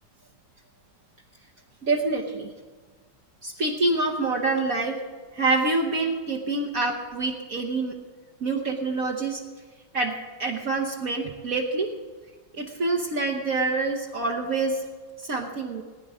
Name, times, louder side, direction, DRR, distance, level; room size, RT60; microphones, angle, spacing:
voice 1, 1.8-2.5 3.4-5.0 5.3-8.0 8.4-9.4 9.9-11.9 12.5-14.8 15.2-15.8, right 3 dB, 55° right, 0 dB, 1.4 m, -26 dB
19.5 x 10.0 x 4.9 m, 1.4 s
omnidirectional pair, 2.0 m